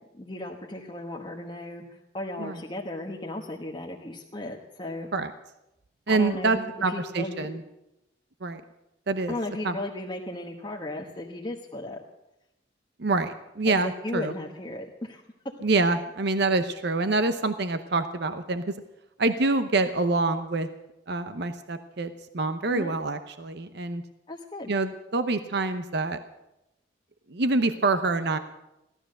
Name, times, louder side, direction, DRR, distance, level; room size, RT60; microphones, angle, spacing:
voice 1, 0.1-5.1 6.1-7.5 9.3-12.0 13.6-15.2 15.9-16.0 22.7-23.0 24.3-24.7, left 1 dB, 25° left, -1 dB, 1.2 m, -36 dB
voice 2, 6.1-7.6 8.4-8.6 9.1-9.3 9.6-9.8 13.0-14.3 15.6-18.7 19.2-20.7 21.1-24.0 24.7-26.2 27.3-28.4, right 3 dB, 60° right, 9 dB, 0.8 m, -26 dB
16.0 x 13.0 x 6.5 m, 0.91 s
head